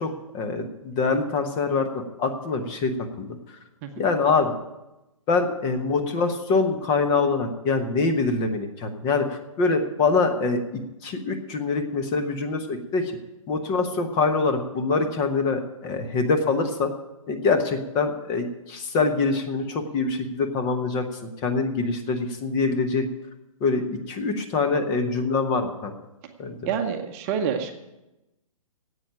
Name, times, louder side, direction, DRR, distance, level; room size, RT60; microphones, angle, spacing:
voice 1, 0.0-3.6 4.0-4.5 5.3-13.1 13.5-16.9 17.3-21.1 21.4-23.1 23.6-25.9 26.4-26.6, left 4 dB, 25° left, 6 dB, 1.1 m, -24 dB
voice 2, 26.7-27.7, right 7 dB, 25° right, 5 dB, 0.9 m, -27 dB
9.8 x 8.4 x 8.8 m, 0.98 s
figure-of-eight pair, 125°, 18 cm